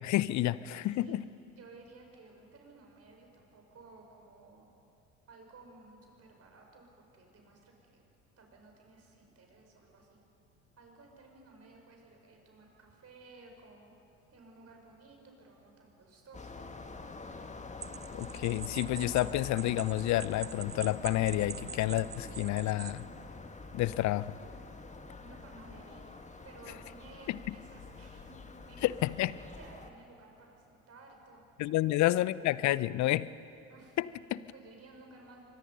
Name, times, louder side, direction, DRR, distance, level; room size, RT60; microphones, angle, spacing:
voice 1, 0.0-1.2 18.1-23.0 23.7-24.4 27.3-27.4 28.8-29.3 31.6-33.3 34.0-34.4, left 15 dB, 45° left, 19 dB, 0.7 m, -30 dB
voice 2, 0.8-1.2 1.5-4.7 5.3-8.0 8.4-10.2 10.8-13.9 14.3-16.6 25.2-26.1 26.4-31.4 33.7-34.0 34.5-35.6, right 3 dB, 35° right, 1 dB, 5.4 m, -56 dB
sound 1, 16.3-29.9, left 3 dB, 15° left, 1.8 m, -46 dB
sound 2, 17.8-23.0, right 6 dB, 15° right, 0.6 m, -45 dB
25.5 x 23.0 x 5.5 m, 2.8 s
figure-of-eight pair, 60°, 41 cm